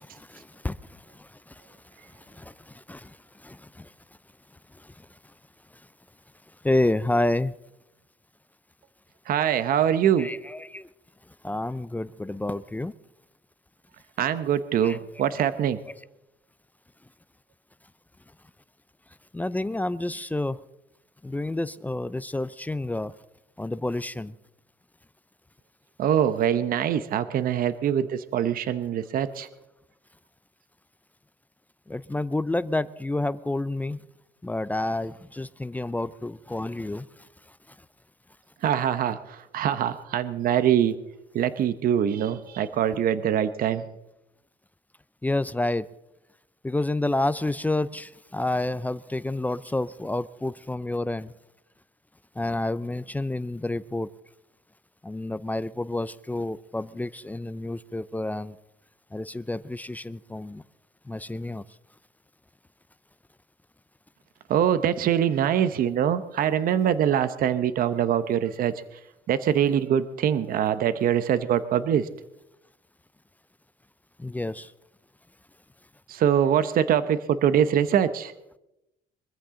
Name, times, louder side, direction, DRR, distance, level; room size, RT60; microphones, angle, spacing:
voice 1, 6.6-7.5 10.2-10.8 11.4-12.9 14.8-15.0 15.4-15.5 19.3-20.6 21.2-23.1 23.6-24.3 31.9-34.0 34.4-37.0 45.2-45.9 46.6-51.3 52.4-54.1 55.0-58.5 59.1-60.6 61.1-61.6 74.2-74.7, left 2 dB, 10° left, 16 dB, 0.5 m, -29 dB
voice 2, 9.3-10.3 14.2-15.8 26.0-29.5 38.6-40.9 41.3-43.8 64.5-68.7 69.3-72.1 76.1-78.3, right 9 dB, 60° right, 12 dB, 0.9 m, -23 dB
23.5 x 14.5 x 3.8 m, 0.89 s
cardioid pair, 110°, 17 cm